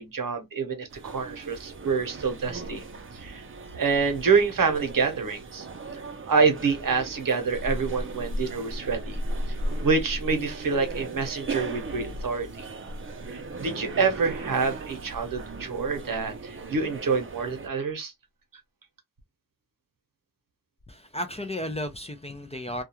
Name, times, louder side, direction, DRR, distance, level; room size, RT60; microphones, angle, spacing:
voice 1, 0.0-2.8 3.1-3.4 3.7-5.7 5.9-6.0 6.3-9.2 9.5-9.6 9.8-12.7 13.3-18.1, right 5 dB, 70° right, 0.8 m, -27 dB
sound 1, 0.9-17.7, right 1 dB, 35° right, 0.5 m, -36 dB
voice 2, 20.9-22.8, left 1 dB, 20° left, 0.4 m, -34 dB
2.3 x 2.2 x 2.8 m
wide cardioid pair, 95°, 35 cm